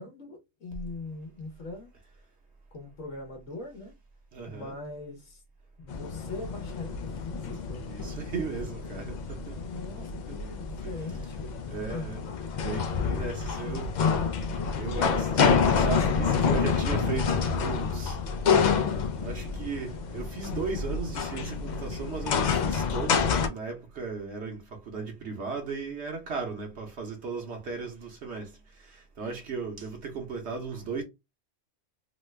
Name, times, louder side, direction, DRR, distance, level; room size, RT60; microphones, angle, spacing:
voice 1, 0.0-1.9 2.7-3.9 4.5-5.4 5.8-7.9 9.5-12.1 13.2-14.2, left 3 dB, 80° left, 1.2 m, -41 dB
voice 2, 4.3-4.7 7.8-9.6 10.3-10.4 10.8-10.9 11.7-12.2 12.6-13.9 14.8-18.2 19.2-28.5 29.2-31.0, right 5 dB, 65° right, 1.0 m, -36 dB
sound 1, 5.9-23.5, left 6 dB, 65° left, 0.4 m, -28 dB
3.1 x 2.1 x 3.1 m
omnidirectional pair, 1.3 m